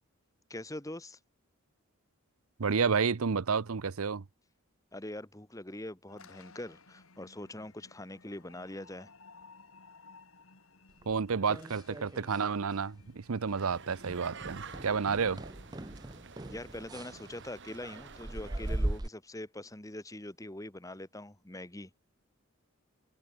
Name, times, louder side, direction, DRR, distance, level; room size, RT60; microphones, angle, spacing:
voice 1, 0.5-1.2 4.9-9.1 16.5-22.0, left 1 dB, 15° left, 1.6 m, -43 dB
voice 2, 2.6-4.2 11.1-15.4, right 5 dB, 75° right, 0.7 m, -30 dB
sound 1, 6.1-16.2, left 4 dB, 70° left, 2.7 m, -58 dB
sound 2, 11.0-12.5 12.7-13.1 13.4-13.6 14.0-19.1, right 1 dB, 20° right, 0.6 m, -39 dB
sound 3, 13.6-19.0, right 5 dB, 55° right, 1.6 m, -49 dB
head